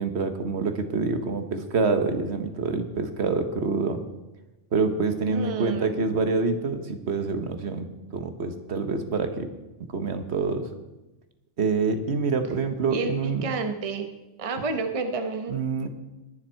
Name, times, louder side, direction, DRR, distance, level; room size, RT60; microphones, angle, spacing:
voice 1, 0.0-4.0 4.7-7.9 8.1-9.5 9.9-10.7 11.6-13.5 15.5-15.9, right 4 dB, 60° right, 8 dB, 1.3 m, -26 dB
voice 2, 5.3-5.9 12.9-14.1 14.4-15.6, right 4 dB, 30° right, 7 dB, 0.9 m, -30 dB
21.0 x 7.3 x 4.4 m, 1.1 s
omnidirectional pair, 1.3 m